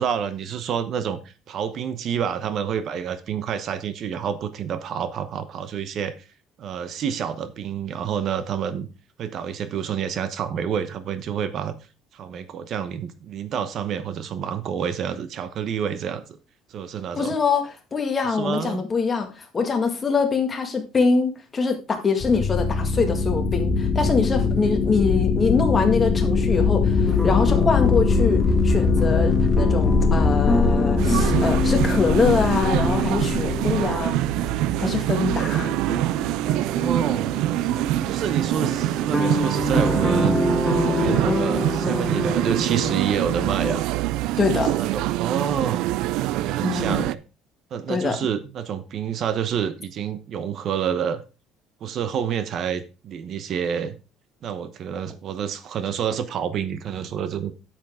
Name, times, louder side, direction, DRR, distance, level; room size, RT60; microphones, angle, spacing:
voice 1, 0.0-6.1 6.6-8.9 9.2-11.8 12.1-16.2 16.7-17.4 18.3-18.8 36.7-37.3 38.0-40.4 40.9-43.8 44.5-45.8 46.3-47.2 47.7-51.2 51.8-54.0 54.4-57.5, right 8 dB, 50° right, 0.9 m, -28 dB
voice 2, 17.2-34.2 34.8-35.7 44.4-44.7 46.6-47.1 47.9-48.2, left 4 dB, 25° left, 1.9 m, -24 dB
sound 1, 22.2-34.5, left 4 dB, 45° left, 1.7 m, -21 dB
sound 2, 27.1-43.8, left 1 dB, ahead, 1.5 m, -28 dB
sound 3, 31.0-47.1, right 15 dB, 75° right, 0.4 m, -25 dB
9.2 x 7.5 x 3.7 m
cardioid pair, 130°, 0 cm